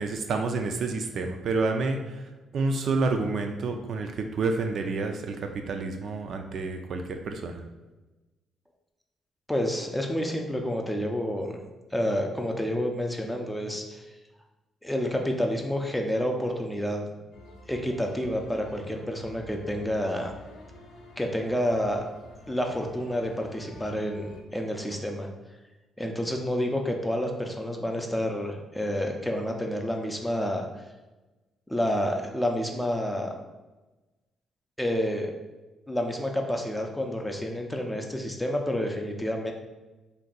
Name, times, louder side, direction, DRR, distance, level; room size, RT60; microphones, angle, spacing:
voice 1, 0.0-2.2 2.5-7.6, right 3 dB, 60° right, 4 dB, 0.3 m, -29 dB
voice 2, 9.5-11.6 11.9-14.0 14.8-17.1 17.7-20.3 21.2-22.0 22.5-25.3 26.0-30.7 31.7-33.3 34.8-35.3 35.9-39.5, equal, 5° left, 2 dB, 0.4 m, -29 dB
sound 1, 17.3-24.4, left 1 dB, 80° left, 0.5 m, -49 dB
2.6 x 2.2 x 3.9 m, 1.1 s
cardioid pair, 90°, 0 cm